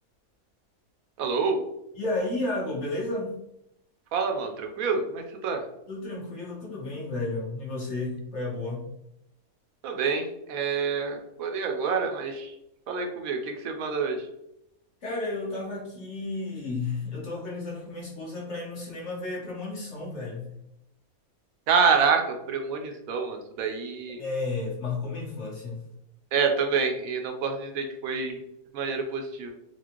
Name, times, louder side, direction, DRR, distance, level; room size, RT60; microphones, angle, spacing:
voice 1, 1.2-1.6 4.1-5.6 9.8-12.5 12.9-14.2 21.7-24.2 26.3-28.4 28.7-29.5, right 5 dB, 75° right, 4 dB, 1.0 m, -27 dB
voice 2, 1.9-3.3 5.9-8.9 15.0-20.5 24.2-25.8, left 2 dB, 55° left, -3 dB, 1.3 m, -32 dB
4.2 x 2.3 x 2.9 m, 0.82 s
omnidirectional pair, 1.5 m